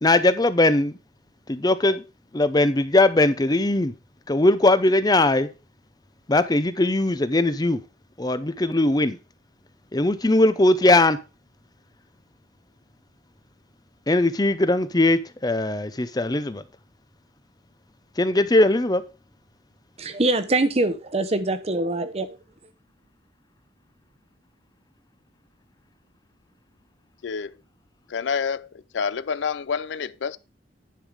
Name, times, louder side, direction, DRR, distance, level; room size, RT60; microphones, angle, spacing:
voice 1, 0.0-0.9 1.5-2.0 2.3-3.9 4.3-5.5 6.3-7.8 8.2-9.2 9.9-11.2 14.1-16.6 18.2-19.0, left 2 dB, 20° left, 0.6 m, -20 dB
voice 2, 20.0-22.4, right 2 dB, 35° right, 0.9 m, -24 dB
voice 3, 27.2-27.5 28.1-28.7 28.9-30.4, left 6 dB, 80° left, 0.4 m, -28 dB
10.5 x 5.6 x 5.0 m
head